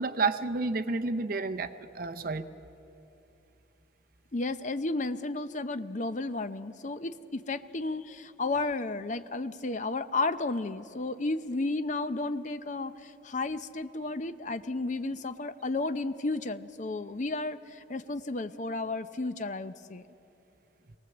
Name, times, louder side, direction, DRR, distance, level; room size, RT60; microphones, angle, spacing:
voice 1, 0.0-1.7 1.9-2.5, right 3 dB, 45° right, 8 dB, 0.7 m, -30 dB
voice 2, 4.3-20.0, left 2 dB, 40° left, 12 dB, 0.6 m, -33 dB
24.0 x 18.5 x 7.8 m, 2.9 s
head